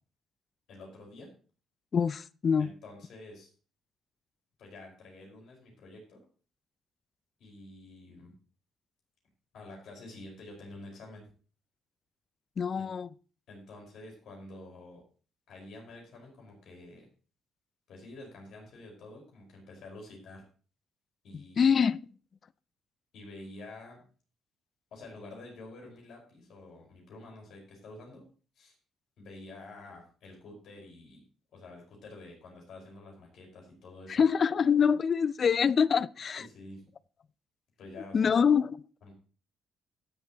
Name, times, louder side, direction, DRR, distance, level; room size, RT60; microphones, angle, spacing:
voice 1, 0.7-1.3 2.6-3.5 4.6-6.2 7.4-8.3 9.5-11.3 12.7-12.9 13.5-15.0 15.5-17.1 17.9-20.4 21.2-21.8 23.1-24.0 24.9-28.3 28.5-28.7 29.2-31.2 31.5-34.2 36.3-36.8 37.8-38.4 39.0-39.1, left 2 dB, 70° left, 5.0 m, -48 dB
voice 2, 1.9-2.7 12.6-13.1 21.3-22.0 34.1-36.5 38.1-38.8, left 6 dB, 50° left, 0.4 m, -25 dB
17.5 x 7.4 x 3.0 m
supercardioid pair, 70°, 0 cm